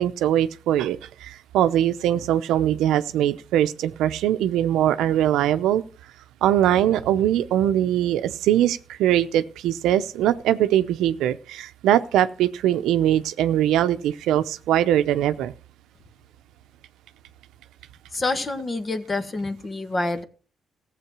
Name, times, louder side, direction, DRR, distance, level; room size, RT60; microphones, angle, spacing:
voice 1, 0.0-5.8 6.4-15.5, right 11 dB, 85° right, 12 dB, 0.7 m, -21 dB
voice 2, 18.1-20.2, left 2 dB, 30° left, 10 dB, 1.6 m, -27 dB
15.0 x 7.6 x 6.1 m, 0.40 s
cardioid pair, 90°, 0 cm